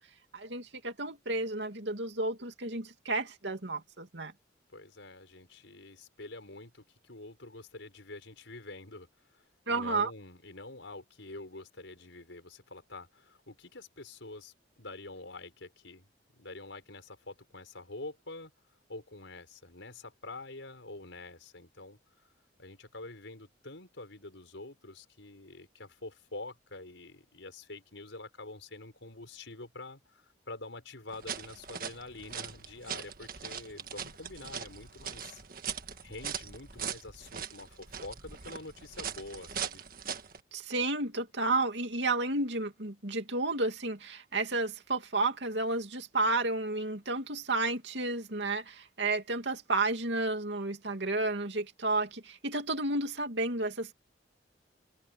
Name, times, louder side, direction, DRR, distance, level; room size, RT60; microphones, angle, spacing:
voice 1, 0.3-4.3 9.7-10.1 40.5-53.9, right 2 dB, 70° right, 2.7 m, -32 dB
voice 2, 4.7-16.1 16.3-18.5 18.9-22.0 22.6-35.4 36.0-39.8, left 2 dB, 90° left, 5.5 m, -46 dB
sound 1, 31.1-40.4, right 7 dB, 50° right, 1.7 m, -41 dB
head